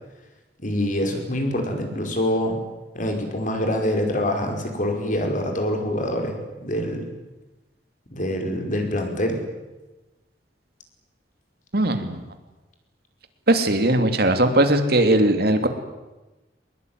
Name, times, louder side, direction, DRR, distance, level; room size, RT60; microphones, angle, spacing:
voice 1, 0.6-2.6 2.9-7.1 8.1-9.4, left 1 dB, 45° left, 3 dB, 5.2 m, -25 dB
voice 2, 11.7-12.2 13.5-15.7, right 1 dB, 60° right, 7 dB, 2.8 m, -19 dB
23.0 x 21.5 x 9.5 m, 1.1 s
head